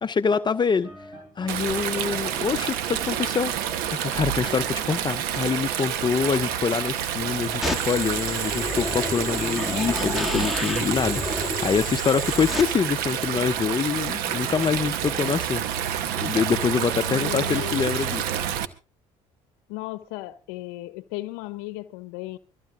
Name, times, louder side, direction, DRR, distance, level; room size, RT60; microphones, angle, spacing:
voice 1, 0.0-18.3, left 6 dB, 30° left, 0.6 m, -25 dB
sound 1, 0.7-12.0, right 1 dB, 20° right, 7.9 m, -49 dB
Stream, 1.5-18.6, right 10 dB, 85° right, 1.0 m, -28 dB
sound 2, 7.6-12.6, left 2 dB, ahead, 1.7 m, -31 dB
voice 2, 17.1-17.8 19.7-22.4, left 18 dB, 90° left, 0.7 m, -35 dB
24.0 x 15.0 x 2.5 m
supercardioid pair, 80°, 15 cm